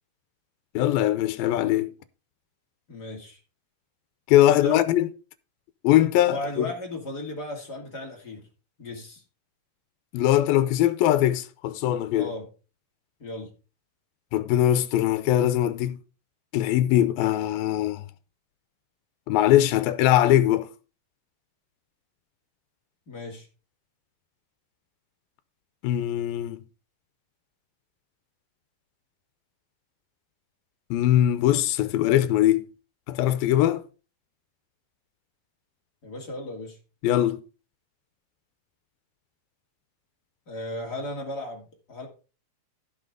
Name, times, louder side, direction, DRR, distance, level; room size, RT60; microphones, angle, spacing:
voice 1, 0.7-1.9 4.3-5.1 5.8-6.7 10.1-12.3 14.3-16.0 16.5-18.0 19.3-20.7 25.8-26.6 30.9-32.7 33.1-33.8 37.0-37.4, left 13 dB, 90° left, 2.5 m, -21 dB
voice 2, 2.9-3.4 4.4-4.8 6.3-8.5 8.8-9.2 12.2-12.5 13.2-13.5 23.1-23.5 36.0-36.8 40.5-42.1, left 1 dB, 30° left, 2.7 m, -35 dB
16.0 x 5.9 x 3.7 m
omnidirectional pair, 4.2 m